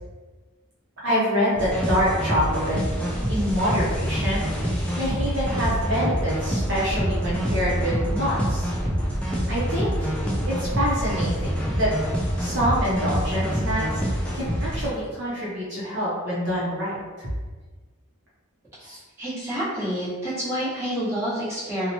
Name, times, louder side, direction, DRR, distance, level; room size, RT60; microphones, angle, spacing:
voice 1, 1.0-2.8 3.3-4.4 5.0-8.7 9.5-10.1 10.5-11.9 12.4-17.3 18.8-19.0, equal, 55° right, -7 dB, 0.7 m, -26 dB
sound 1, 1.5-14.9, equal, 5° left, 0.3 m, -26 dB
voice 2, 19.2-21.9, equal, 15° right, -12 dB, 1.1 m, -28 dB
2.8 x 2.1 x 2.7 m, 1.3 s
head